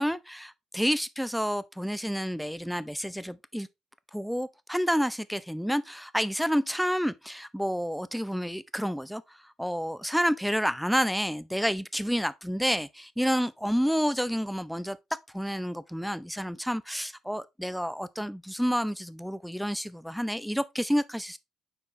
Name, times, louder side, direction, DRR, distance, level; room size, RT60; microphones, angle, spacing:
voice 1, 0.0-3.7 4.1-15.0 15.3-21.4, equal, ahead, 0.6 m, -29 dB
6.9 x 4.6 x 3.1 m
hypercardioid pair, 55°, 0 cm